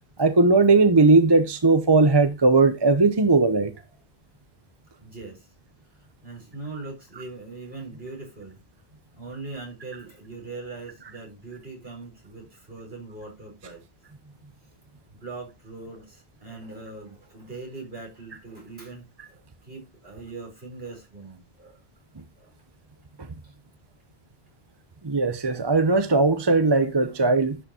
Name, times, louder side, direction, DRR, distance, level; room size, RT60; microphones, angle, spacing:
voice 1, 0.2-3.7 25.0-27.6, right 3 dB, 25° right, 0.7 m, -18 dB
voice 2, 5.0-5.5 6.2-8.6 9.1-13.8 15.1-21.8 22.4-22.6 23.4-23.5 27.0-27.2, right 3 dB, 60° right, 4.4 m, -41 dB
11.0 x 5.7 x 2.9 m
omnidirectional pair, 1.1 m